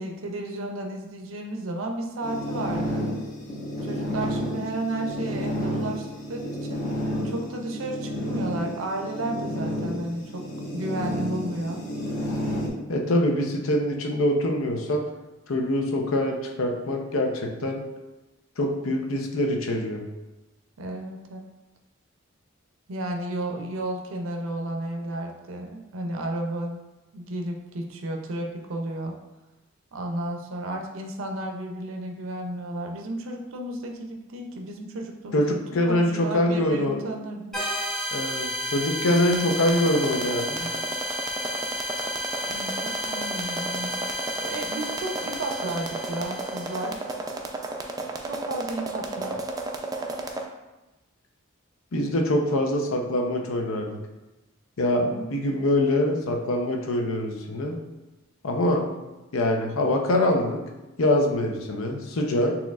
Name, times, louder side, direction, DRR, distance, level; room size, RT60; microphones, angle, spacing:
voice 1, 0.0-3.1 3.8-6.8 7.2-10.5 10.7-11.8 20.8-21.5 22.9-26.8 27.1-29.2 29.9-37.6 42.5-44.1 44.4-47.0 48.2-49.4 55.0-55.4, right 1 dB, 75° right, 3 dB, 0.5 m, -33 dB
sound 1, 2.2-12.7, equal, 40° left, 1.2 m, -31 dB
voice 2, 12.9-15.0 15.5-17.8 18.6-20.0 35.3-37.0 38.1-40.7 51.9-54.0 54.8-57.8 58.4-58.9 59.3-60.6 61.0-62.6, left 1 dB, 80° left, 2 dB, 0.6 m, -24 dB
sound 2, 37.5-46.9, equal, ahead, 0.9 m, -32 dB
sound 3, 39.2-50.4, right 2 dB, 20° right, 0.3 m, -33 dB
6.2 x 2.9 x 2.4 m, 1.1 s
head